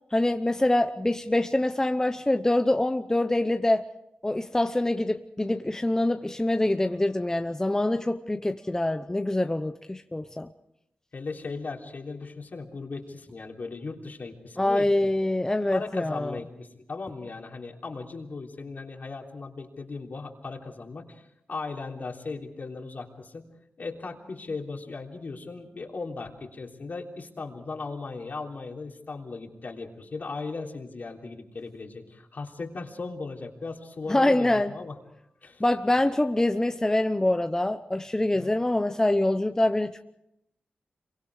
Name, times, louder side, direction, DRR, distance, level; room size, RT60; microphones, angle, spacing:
voice 1, 0.1-3.9 4.2-10.5 14.6-16.4 34.1-34.7 35.6-40.0, left 1 dB, 15° left, 0.8 m, -25 dB
voice 2, 11.1-14.9 15.7-23.5 23.8-34.9 35.4-35.6 38.3-38.6, left 3 dB, 55° left, 3.4 m, -37 dB
27.0 x 23.5 x 4.9 m
cardioid pair, 75°, 4 cm